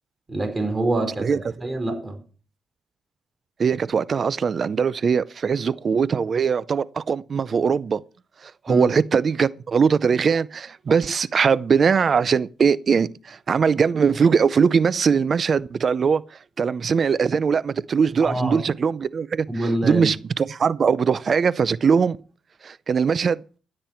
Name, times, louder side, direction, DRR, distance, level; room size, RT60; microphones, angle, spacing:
voice 1, 0.3-2.2 8.7-8.9 18.2-18.6 19.5-20.1, right 2 dB, 25° right, 4.7 m, -26 dB
voice 2, 3.6-8.0 8.4-16.2 16.6-19.5 19.8-22.2 22.6-23.4, right 6 dB, 50° right, 0.5 m, -21 dB
16.0 x 8.8 x 4.4 m
cardioid pair, 80°, 0 cm